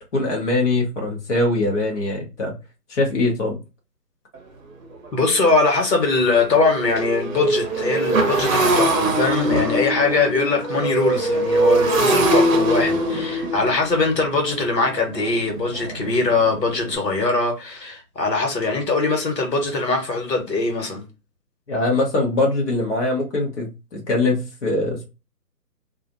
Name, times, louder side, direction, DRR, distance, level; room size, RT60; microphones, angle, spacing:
voice 1, 0.1-2.5 2.9-3.6 21.7-25.0, left 2 dB, 45° left, 0.9 m, -22 dB
Motorcycle, 4.3-4.4 4.9-5.1 5.4-17.0, right 1 dB, 55° right, 0.8 m, -23 dB
voice 2, 5.1-21.0, left 3 dB, 85° left, 1.2 m, -21 dB
2.4 x 2.0 x 2.5 m
hypercardioid pair, 160°, 49 cm